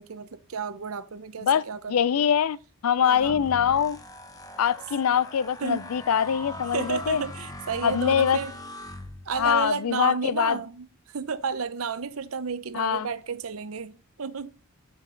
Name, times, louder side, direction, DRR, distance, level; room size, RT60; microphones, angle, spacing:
voice 1, 0.0-2.2 3.0-3.4 5.6-5.9 6.7-8.5 9.2-14.5, right 5 dB, 75° right, 0.7 m, -32 dB
voice 2, 1.9-2.6 2.8-4.0 4.6-7.2 7.8-8.4 9.4-10.6 12.7-13.1, left 8 dB, 80° left, 0.4 m, -23 dB
sound 1, 3.2-9.6, left 1 dB, 15° left, 0.9 m, -41 dB
10.5 x 5.2 x 3.8 m
head